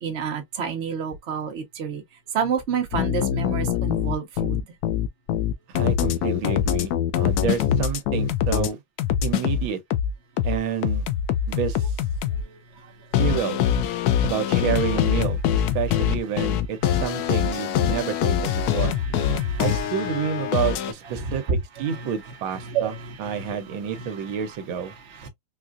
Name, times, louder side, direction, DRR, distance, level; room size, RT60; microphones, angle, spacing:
voice 1, 0.0-2.0 2.3-4.6 18.6-19.9 21.1-21.4 21.9-22.1 22.6-23.6 23.9-24.1 25.1-25.3, right 7 dB, 45° right, 1.0 m, -30 dB
sound 1, 2.9-8.7 9.0-12.4 13.1-20.9, left 9 dB, 85° left, 0.8 m, -23 dB
voice 2, 5.7-8.8 9.2-9.8 10.4-11.1 11.5-12.0 13.2-13.6 14.2-18.9 19.6-24.9, right 8 dB, 75° right, 1.5 m, -29 dB
4.3 x 2.4 x 2.4 m
omnidirectional pair, 2.2 m